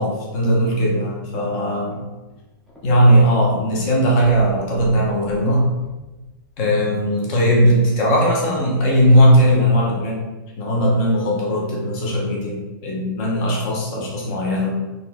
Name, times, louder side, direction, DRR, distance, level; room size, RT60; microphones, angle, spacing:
voice 1, 0.0-2.0 2.8-5.7 6.6-10.2 10.6-14.8, equal, 25° left, -3 dB, 0.9 m, -18 dB
sound 1, 1.9-3.3 3.6-3.7 4.1-6.7 7.4-7.5, right 2 dB, 5° left, 0.7 m, -41 dB
4.0 x 3.1 x 3.6 m, 1.1 s
supercardioid pair, 175°, 12 cm